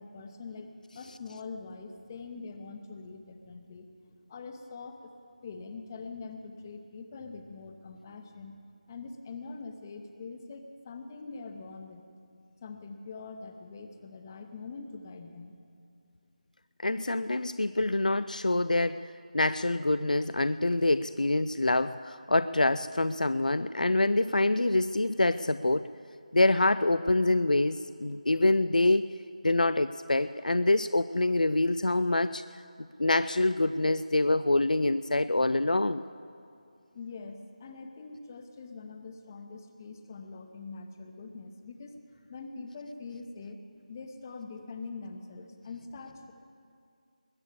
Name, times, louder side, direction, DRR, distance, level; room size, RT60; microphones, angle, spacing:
voice 1, 0.0-3.9 4.3-5.1 5.4-8.6 8.9-12.0 12.6-15.5 36.9-42.0 42.3-43.6 43.9-46.3, left 4 dB, 25° left, 6 dB, 0.9 m, -43 dB
voice 2, 16.8-19.1 19.3-25.9 26.3-29.0 29.4-32.4 33.0-36.0, left 2 dB, 80° left, 14 dB, 0.4 m, -26 dB
21.0 x 7.2 x 8.5 m, 2.5 s
figure-of-eight pair, 160°, 4 cm